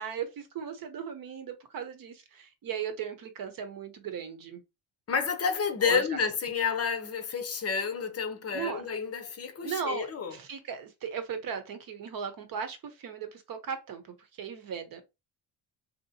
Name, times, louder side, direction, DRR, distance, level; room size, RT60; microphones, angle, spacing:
voice 1, 0.0-4.6 5.9-6.0 8.5-8.8 9.6-14.0 14.4-15.0, right 7 dB, 50° right, 0.9 m, -37 dB
voice 2, 5.1-10.4, left 6 dB, 35° left, 0.6 m, -30 dB
4.2 x 2.9 x 2.7 m
cardioid pair, 145°, 42 cm